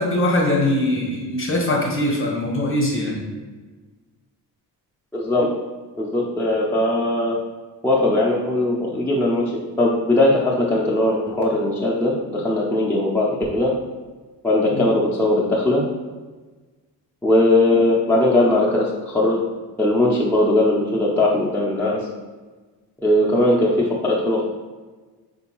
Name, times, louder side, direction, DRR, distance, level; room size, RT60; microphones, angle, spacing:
voice 1, 0.0-3.2 14.7-14.9, left 1 dB, 30° left, -1 dB, 0.8 m, -21 dB
voice 2, 5.1-5.5 6.0-7.4 7.8-9.4 9.8-13.7 14.4-15.8 17.2-19.4 19.8-22.1 23.0-24.4, left 1 dB, 5° left, -6 dB, 0.4 m, -19 dB
3.7 x 2.6 x 2.9 m, 1.3 s
cardioid pair, 100°, 43 cm